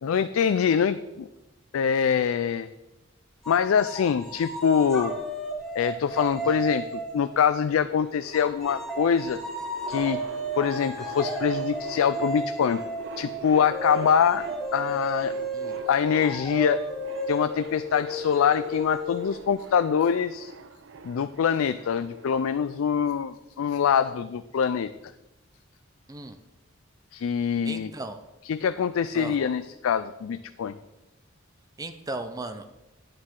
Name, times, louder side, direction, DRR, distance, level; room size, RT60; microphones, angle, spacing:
voice 1, 0.0-1.3 1.7-2.7 3.5-5.1 5.7-6.9 7.1-9.4 9.9-10.2 10.6-12.8 13.2-14.4 14.7-15.3 15.9-16.8 17.3-20.5 21.0-24.9 27.1-27.9 28.4-30.7, left 7 dB, 80° left, 12 dB, 0.4 m, -24 dB
sound 1, 3.4-7.4 8.3-19.6, right 1 dB, 5° left, 2.1 m, -34 dB
sound 2, 7.5-23.4, right 4 dB, 65° right, 0.6 m, -44 dB
voice 2, 27.6-28.2 29.1-29.4 31.8-32.7, right 2 dB, 20° right, 8 dB, 0.5 m, -36 dB
11.5 x 8.8 x 3.7 m, 1.0 s
head